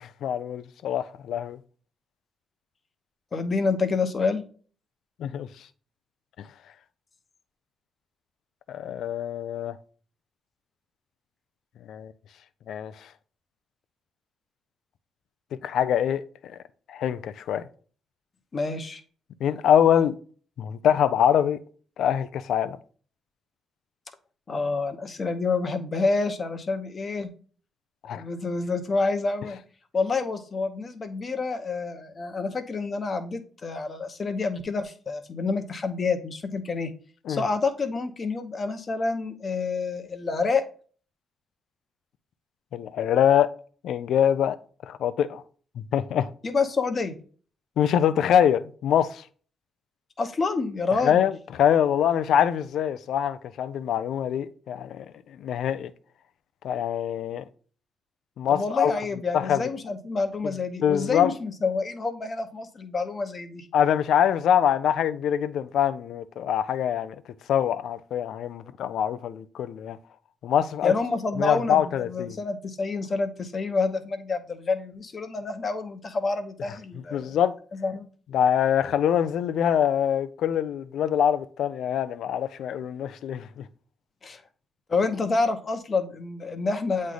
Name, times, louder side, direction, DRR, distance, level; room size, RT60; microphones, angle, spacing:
voice 1, 0.0-1.6 5.2-5.5 8.7-9.8 11.9-12.1 12.7-13.1 15.6-16.6 16.9-17.7 19.4-20.2 20.6-21.6 22.0-22.8 28.0-28.2 37.3-37.4 42.7-43.5 43.8-44.6 44.9-45.4 45.8-46.3 47.8-49.2 50.9-55.9 56.6-57.4 58.4-59.0 59.3-59.7 60.4-60.5 60.8-61.3 63.7-67.2 67.5-70.0 70.4-70.9 71.4-72.4 77.1-77.5 78.3-83.7, left 9 dB, 70° left, 0.4 m, -24 dB
voice 2, 3.3-4.4 18.5-19.0 24.5-27.3 28.1-29.6 29.9-36.9 37.3-40.6 46.4-47.1 50.2-51.2 58.5-63.7 70.8-77.4 77.7-78.1 84.2-84.4 84.9-87.1, left 4 dB, 40° left, 0.9 m, -28 dB
8.1 x 3.2 x 3.8 m
cardioid pair, 90°, 0 cm